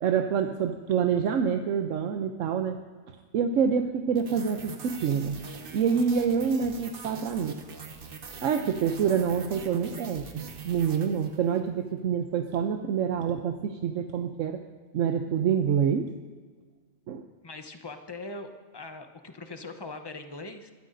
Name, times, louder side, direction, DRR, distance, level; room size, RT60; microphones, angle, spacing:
voice 1, 0.0-2.8 3.3-5.4 5.7-7.6 8.4-14.6 14.9-16.1 17.1-17.2, right 7 dB, 75° right, 5 dB, 1.0 m, -27 dB
sound 1, 4.2-11.7, right 4 dB, 45° right, 1.0 m, -43 dB
voice 2, 17.4-20.7, left 3 dB, 25° left, 6 dB, 0.7 m, -41 dB
22.0 x 13.0 x 2.6 m, 1.5 s
omnidirectional pair, 1.4 m